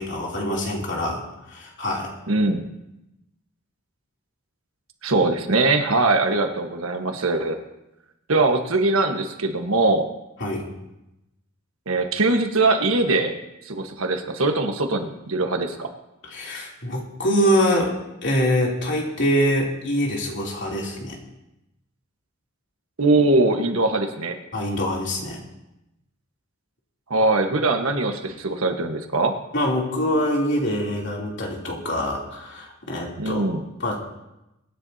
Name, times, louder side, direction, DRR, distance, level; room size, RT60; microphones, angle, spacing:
voice 1, 0.0-2.1 10.4-10.7 16.2-21.2 24.5-25.4 29.5-33.4 33.8-34.0, equal, 60° left, -2 dB, 3.1 m, -24 dB
voice 2, 2.3-2.6 5.0-7.6 8.3-10.1 11.9-13.4 13.6-15.9 23.0-24.4 27.1-29.3 33.2-33.6, right 2 dB, 85° right, 5 dB, 1.4 m, -21 dB
24.0 x 10.5 x 2.8 m, 0.93 s
head